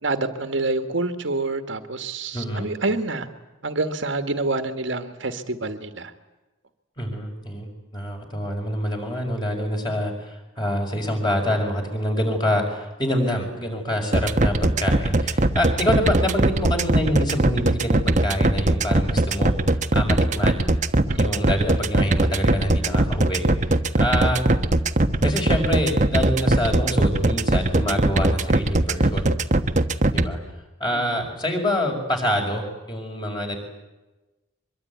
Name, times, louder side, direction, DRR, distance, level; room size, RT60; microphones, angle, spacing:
voice 1, 0.0-3.3 3.6-6.1 20.2-20.3 21.1-21.3 30.9-31.2, right 2 dB, 65° right, 7 dB, 1.8 m, -27 dB
voice 2, 2.3-2.7 7.0-20.6 21.1-23.4 24.0-24.4 25.2-29.3 30.1-30.4 30.8-33.6, equal, 20° left, 2 dB, 5.4 m, -26 dB
sound 1, 14.1-30.2, right 2 dB, 35° right, 1.2 m, -19 dB
24.0 x 23.0 x 9.5 m, 1.1 s
head